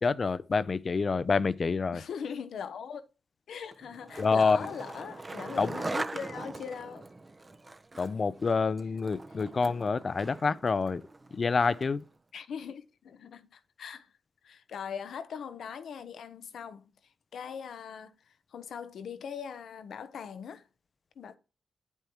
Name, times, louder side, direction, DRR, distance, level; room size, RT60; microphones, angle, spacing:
voice 1, 0.0-2.0 4.2-4.6 5.6-5.7 8.0-11.0 11.3-12.0, left 4 dB, 50° left, 0.5 m, -27 dB
voice 2, 1.9-3.0 3.5-7.1 12.3-14.1 14.4-16.9 17.3-18.1 18.5-20.6 21.2-21.4, left 7 dB, 80° left, 0.7 m, -40 dB
Skateboard, 3.7-12.0, right 2 dB, 30° right, 0.7 m, -41 dB
8.9 x 8.0 x 2.9 m
cardioid pair, 60°, 0 cm